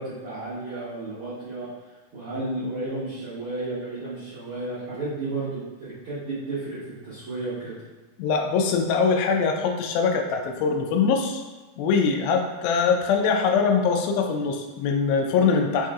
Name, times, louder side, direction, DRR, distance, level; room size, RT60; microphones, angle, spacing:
voice 1, 0.0-1.7 2.1-7.8, right 2 dB, 75° right, -12 dB, 1.2 m, -32 dB
voice 2, 8.2-11.4 11.8-15.9, left 5 dB, 90° left, 3 dB, 2.4 m, -22 dB
6.7 x 2.7 x 2.4 m, 1.3 s
omnidirectional pair, 4.1 m